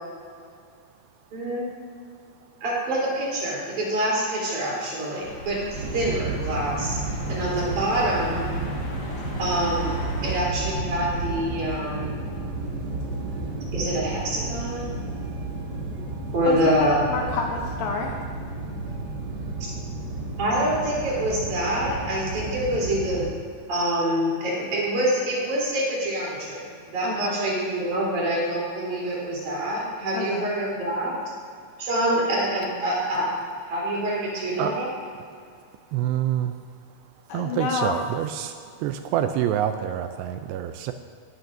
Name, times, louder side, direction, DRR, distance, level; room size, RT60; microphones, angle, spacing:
voice 1, 1.3-1.6 2.6-7.0 7.3-8.4 9.4-9.9 10.2-12.2 13.7-14.9 16.3-17.0 19.6-19.7 20.4-23.3 23.7-31.1 31.8-33.3 33.7-34.9, right 1 dB, 45° right, -6 dB, 4.8 m, -26 dB
sound 1, 5.2-10.4, left 2 dB, 55° left, 4.0 m, -38 dB
sound 2, 5.7-23.3, right 2 dB, 65° right, 1.0 m, -32 dB
voice 2, 16.5-18.2 27.0-27.4 30.1-30.5 37.3-38.0, left 5 dB, 75° left, 1 dB, 2.2 m, -28 dB
voice 3, 35.9-36.5 37.3-38.5 38.8-40.9, right 11 dB, 85° right, 8 dB, 2.6 m, -26 dB
18.5 x 12.5 x 2.7 m, 2.3 s
omnidirectional pair, 4.9 m